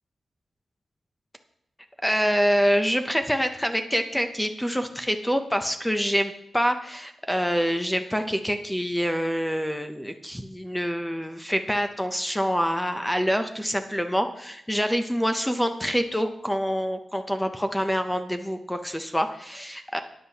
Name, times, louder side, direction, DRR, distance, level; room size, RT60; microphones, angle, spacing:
voice 1, 2.0-20.0, equal, 5° left, 7 dB, 0.5 m, -26 dB
12.5 x 9.6 x 2.8 m, 0.76 s
wide cardioid pair, 155°, 0 cm